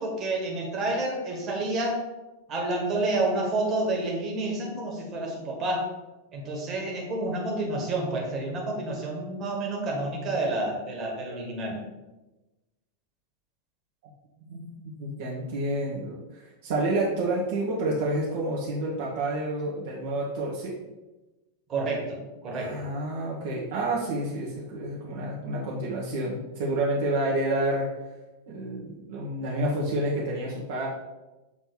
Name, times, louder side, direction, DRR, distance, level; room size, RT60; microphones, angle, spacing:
voice 1, 0.0-2.1 2.5-5.9 6.3-11.8 21.7-22.8, right 2 dB, 30° right, -1 dB, 1.7 m, -29 dB
voice 2, 14.5-20.7 22.5-27.9 28.5-30.9, right 1 dB, 50° right, -5 dB, 1.2 m, -29 dB
7.1 x 3.4 x 4.6 m, 1.1 s
figure-of-eight pair, 90°, 0 cm